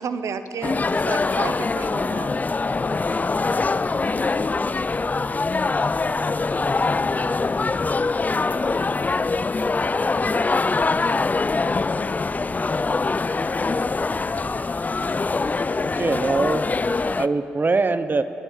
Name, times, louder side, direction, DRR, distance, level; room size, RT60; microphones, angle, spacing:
voice 1, 0.0-2.3, right 6 dB, 65° right, 11 dB, 0.8 m, -32 dB
sound 1, 0.6-17.3, left 3 dB, 30° left, 0.4 m, -23 dB
voice 2, 8.3-9.0 13.1-13.8 14.3-15.5 16.4-17.3, left 5 dB, 60° left, 5 dB, 1.7 m, -47 dB
voice 3, 15.8-16.6 17.2-18.2, right 3 dB, 35° right, 12 dB, 0.8 m, -22 dB
24.5 x 12.5 x 4.8 m, 3.0 s
hypercardioid pair, 45°, 6 cm